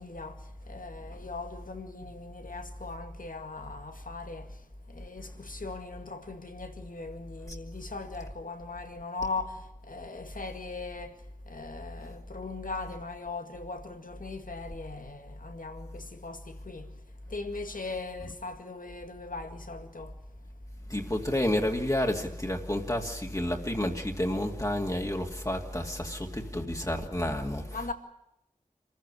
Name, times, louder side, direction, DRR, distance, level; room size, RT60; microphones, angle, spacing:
voice 1, 0.0-20.4 27.7-27.9, left 3 dB, 85° left, 2.1 m, -40 dB
voice 2, 20.9-27.6, left 1 dB, 25° left, 2.5 m, -30 dB
26.5 x 15.0 x 9.8 m
wide cardioid pair, 50°, 14 cm